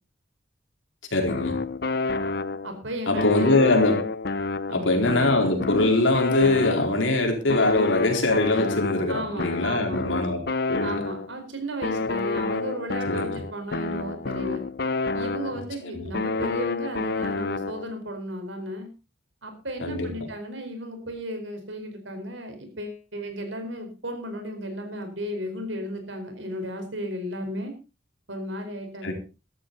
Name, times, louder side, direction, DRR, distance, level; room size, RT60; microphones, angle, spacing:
voice 1, 1.1-1.6 3.1-4.0 4.7-10.4 10.7-10.9 13.1-13.4 15.9-16.1 19.8-20.1 29.0-29.1, left 2 dB, 80° left, 3 dB, 4.2 m, -22 dB
sound 1, 1.3-2.8 3.2-7.1 7.5-11.4 11.8-15.8 16.1-18.0, left 3 dB, 55° left, 0.8 m, -29 dB
voice 2, 2.6-3.6 4.7-5.0 9.1-10.0 10.8-14.6 15.1-18.9 19.4-27.7 28.3-29.1, equal, 80° right, 6 dB, 4.7 m, -34 dB
14.0 x 13.5 x 4.1 m, 0.31 s
head